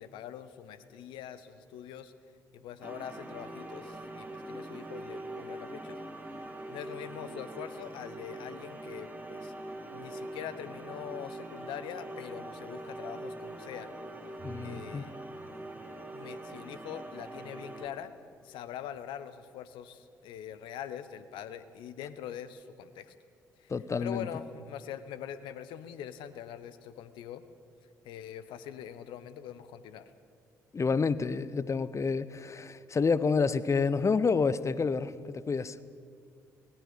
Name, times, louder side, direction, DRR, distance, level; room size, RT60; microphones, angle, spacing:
voice 1, 0.0-2.1 2.5-6.0 6.7-9.5 9.9-13.9 14.6-15.1 16.1-18.1 18.4-23.1 23.6-23.7 24.0-27.4 28.0-30.1, left 9 dB, 65° left, 13 dB, 1.1 m, -43 dB
sound 1, 2.8-17.9, right 1 dB, 20° right, 3.3 m, -43 dB
voice 2, 14.4-15.0 23.7-24.3 30.7-35.8, left 5 dB, 35° left, 16 dB, 1.0 m, -29 dB
sound 2, 14.4-16.2, right 3 dB, 50° right, 6.4 m, -51 dB
24.0 x 18.0 x 7.0 m, 2.3 s
figure-of-eight pair, 45°, 9 cm